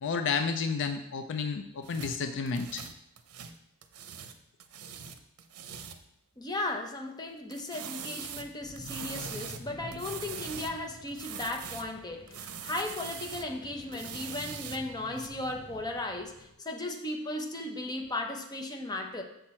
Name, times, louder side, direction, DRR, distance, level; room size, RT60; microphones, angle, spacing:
voice 1, 0.0-2.9, left 5 dB, 55° left, 9 dB, 0.4 m, -31 dB
sound 1, 1.8-4.4 4.6-6.1 7.5-10.8 11.1-11.9 12.3-13.5 13.9-15.3, right 7 dB, 80° right, 0.6 m, -42 dB
voice 2, 6.4-19.2, left 2 dB, 20° left, 3 dB, 0.8 m, -36 dB
sound 2, 8.6-16.5, right 1 dB, 25° right, 1.1 m, -49 dB
6.7 x 6.0 x 4.3 m, 0.80 s
head